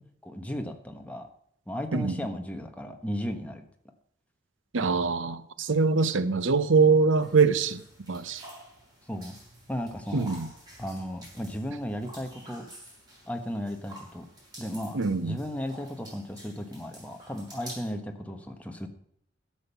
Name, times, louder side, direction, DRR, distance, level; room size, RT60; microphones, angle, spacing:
voice 1, 0.2-1.3 1.7-3.6 9.0-9.4 9.7-10.3 10.8-12.7 13.2-14.3 14.6-18.9, equal, 5° left, 1.3 m, -35 dB
voice 2, 4.7-7.8 8.1-8.4 10.1-10.5 14.9-15.4, right 4 dB, 85° right, 0.8 m, -23 dB
sound 1, 7.2-17.9, right 1 dB, 20° right, 6.3 m, -49 dB
12.5 x 7.5 x 6.9 m
head